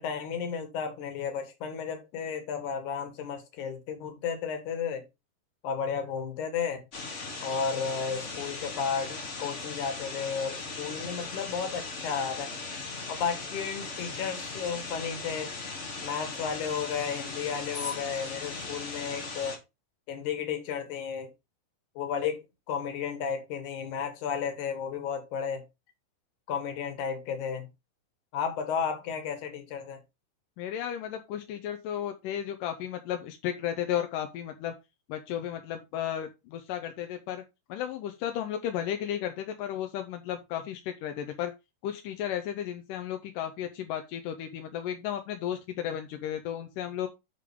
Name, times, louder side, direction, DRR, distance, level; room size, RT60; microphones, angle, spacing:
voice 1, 0.0-5.1 5.6-6.8 7.4-12.5 13.1-15.5 16.0-19.6 20.1-21.3 22.0-25.6 26.5-27.7 28.3-30.0, left 6 dB, 65° left, 3.1 m, -33 dB
sound 1, 6.9-19.6, left 3 dB, 40° left, 0.9 m, -38 dB
voice 2, 30.6-34.7 35.1-37.4 37.7-41.5 41.8-47.1, left 10 dB, 85° left, 2.4 m, -34 dB
10.0 x 3.9 x 5.0 m
omnidirectional pair, 3.8 m